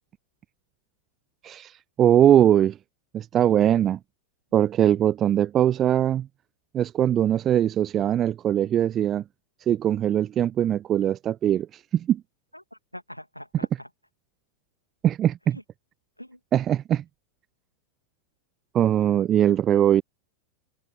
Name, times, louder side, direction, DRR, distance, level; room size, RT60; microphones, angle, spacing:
voice 1, 1.4-2.8 3.1-4.0 4.5-6.3 6.7-9.2 9.7-12.2 15.0-15.6 16.5-17.0 18.7-20.0, right 10 dB, 30° right, 0.3 m, -21 dB
voice 2, 12.5-13.9 15.4-15.6 16.2-16.4, equal, 90° left, 2.7 m, -44 dB
open air
figure-of-eight pair, 90°, 0 cm